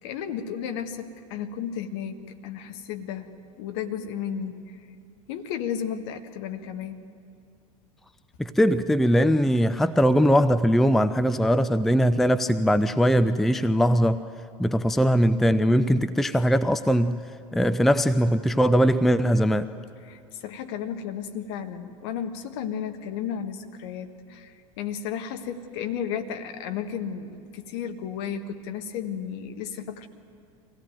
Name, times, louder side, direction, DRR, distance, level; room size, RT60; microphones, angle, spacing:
voice 1, 0.0-3.3 3.6-4.7 5.3-7.0 20.0-30.1, left 8 dB, 50° left, 6 dB, 1.6 m, -33 dB
voice 2, 8.4-14.2 14.6-17.2 17.5-19.7, equal, ahead, 13 dB, 0.5 m, -21 dB
24.0 x 17.5 x 9.3 m, 2.5 s
figure-of-eight pair, 80°, 18 cm